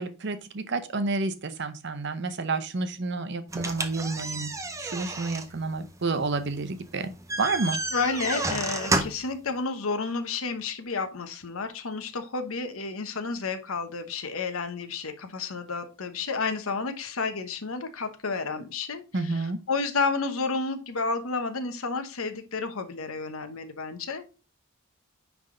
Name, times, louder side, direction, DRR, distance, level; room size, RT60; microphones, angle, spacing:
voice 1, 0.0-4.5 4.8-7.1 7.4-7.8 19.1-19.6, right 3 dB, 50° right, 11 dB, 0.7 m, -30 dB
sound 1, 3.5-9.3, right 2 dB, 15° right, 0.6 m, -31 dB
voice 2, 7.9-24.2, left 4 dB, 75° left, 8 dB, 1.0 m, -31 dB
9.6 x 3.5 x 3.8 m, 0.32 s
head